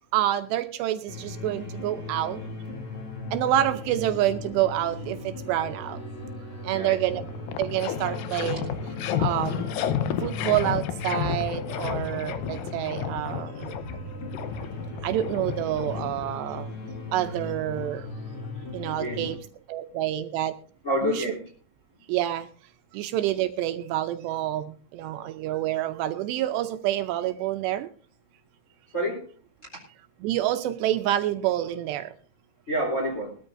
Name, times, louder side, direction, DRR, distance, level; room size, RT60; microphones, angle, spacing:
voice 1, 0.1-2.4 3.3-6.0 6.6-7.2 7.6-8.8 9.2-9.7 10.2-13.7 15.0-16.7 17.1-18.1 18.7-19.4 19.7-20.5 21.0-21.2 22.1-22.5 22.9-27.9 30.2-32.1, right 13 dB, 80° right, 8 dB, 2.7 m, -27 dB
sound 1, 1.1-19.4, left 2 dB, 35° left, 2.7 m, -38 dB
voice 2, 6.7-7.0 18.9-19.3 20.8-21.4 28.9-29.3 29.7-29.8 32.7-33.3, equal, 20° left, -1 dB, 2.9 m, -28 dB
sound 2, 6.8-6.9 7.2-16.6, left 9 dB, 80° left, 2.0 m, -32 dB
20.5 x 13.0 x 2.6 m, 0.42 s
omnidirectional pair, 5.1 m